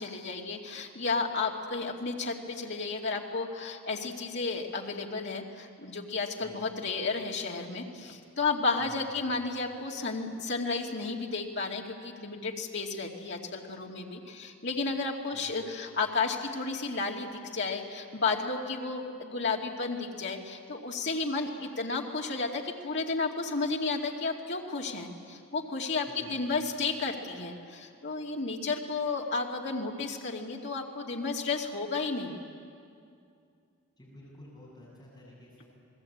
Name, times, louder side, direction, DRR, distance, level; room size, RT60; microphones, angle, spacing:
voice 1, 0.0-32.4, left 4 dB, 50° left, 0 dB, 2.4 m, -32 dB
voice 2, 6.4-6.7 8.8-9.1 15.3-15.5 26.0-26.5 34.0-35.6, left 1 dB, 15° left, -6 dB, 7.4 m, -51 dB
28.5 x 20.5 x 8.7 m, 2.4 s
head